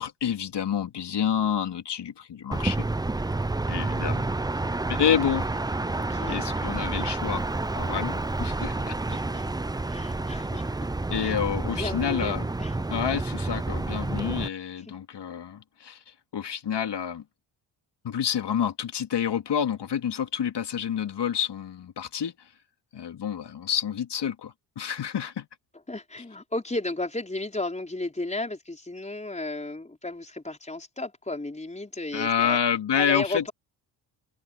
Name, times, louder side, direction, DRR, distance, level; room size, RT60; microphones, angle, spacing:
voice 1, 0.0-2.9 3.7-4.3 4.9-5.5 6.3-7.4 7.7-8.9 11.1-12.5 12.9-16.0 16.3-17.2 18.0-22.3 22.9-25.5 32.1-33.5, left 8 dB, 55° left, 2.9 m, -28 dB
sound 1, 2.5-14.5, right 2 dB, 10° right, 0.6 m, -29 dB
voice 2, 5.7-6.4 9.1-9.5 9.8-10.7 11.2-11.3 11.7-12.7 14.9-15.0 25.9-32.6 32.9-33.5, left 2 dB, 15° left, 4.8 m, -34 dB
supercardioid pair, 65°, 49 cm